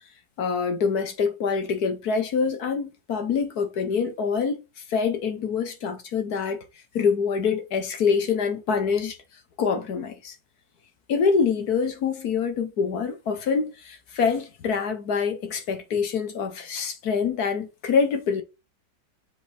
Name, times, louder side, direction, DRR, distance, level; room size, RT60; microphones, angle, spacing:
voice 1, 0.4-4.6 4.9-6.6 6.9-9.2 9.6-10.3 11.1-18.4, left 5 dB, 60° left, 1.4 m, -25 dB
6.7 x 5.0 x 3.4 m
omnidirectional pair, 2.0 m